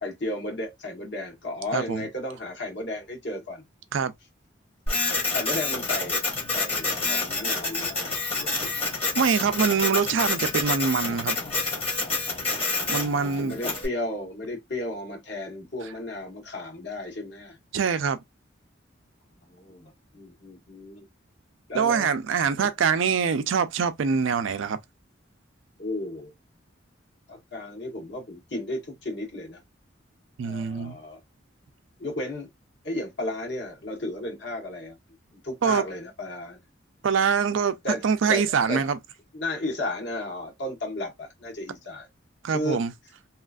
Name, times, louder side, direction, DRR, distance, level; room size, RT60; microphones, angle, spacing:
voice 1, 0.0-3.6 5.3-8.7 12.7-17.6 19.5-21.0 21.7-22.1 22.6-22.7 25.8-26.3 27.3-29.6 30.4-31.2 32.0-32.5 32.8-35.0 35.3-36.6 37.8-38.0 38.3-38.8 39.3-42.1 42.5-42.8, left 1 dB, 60° left, 1.2 m, -34 dB
voice 2, 1.7-2.0 3.9-4.1 9.1-11.4 12.9-13.6 17.7-18.2 21.7-24.8 30.4-31.0 35.6-35.8 37.0-37.8 38.0-39.0 42.4-42.9, right 6 dB, 75° right, 0.4 m, -24 dB
Printer, 4.9-13.9, left 3 dB, 30° left, 1.0 m, -28 dB
2.9 x 2.5 x 2.4 m
head